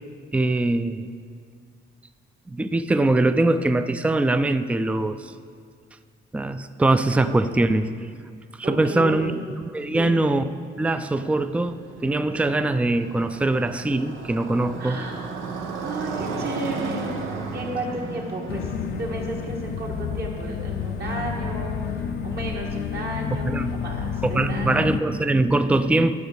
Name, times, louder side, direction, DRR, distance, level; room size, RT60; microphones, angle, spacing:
voice 1, 0.3-1.1 2.5-5.3 6.3-7.9 8.7-9.4 9.7-10.4 10.8-15.0 23.3-23.7 24.2-26.1, right 2 dB, 5° right, 11 dB, 0.4 m, -22 dB
voice 2, 7.1-7.7 8.6-9.4 9.9-10.2 14.8-15.3 15.8-17.1 17.5-18.7 19.0-24.9, right 2 dB, 55° right, -1 dB, 2.3 m, -33 dB
Motorcycle, 11.2-22.5, right 4 dB, 85° right, 1.2 m, -35 dB
sound 1, 18.5-25.0, left 7 dB, 80° left, 0.6 m, -30 dB
12.0 x 6.1 x 7.1 m, 2.1 s
cardioid pair, 90°, 20 cm